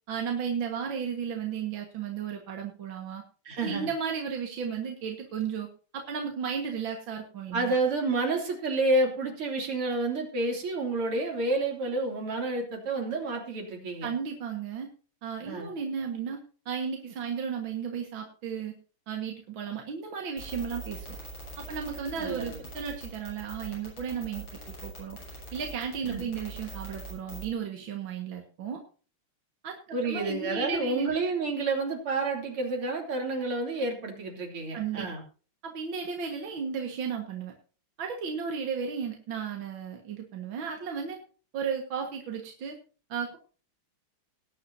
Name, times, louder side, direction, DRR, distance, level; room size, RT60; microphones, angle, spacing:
voice 1, 0.1-3.2 3.6-5.7 5.9-7.8 14.0-14.9 15.2-16.4 16.7-18.7 19.1-21.2 21.7-24.4 24.8-25.2 25.5-28.8 29.6-29.8 30.0-31.1 34.7-35.1 35.6-37.5 38.0-41.2 41.5-42.8 43.1-43.4, right 6 dB, 65° right, 2 dB, 2.4 m, -34 dB
voice 2, 3.5-3.9 7.5-14.1 15.5-15.7 22.2-22.6 26.1-26.2 29.9-35.2, right 2 dB, 80° right, 1 dB, 3.9 m, -29 dB
sound 1, 20.4-27.5, right 2 dB, 80° left, 7.7 m, -42 dB
19.0 x 10.0 x 2.7 m, 0.37 s
omnidirectional pair, 2.4 m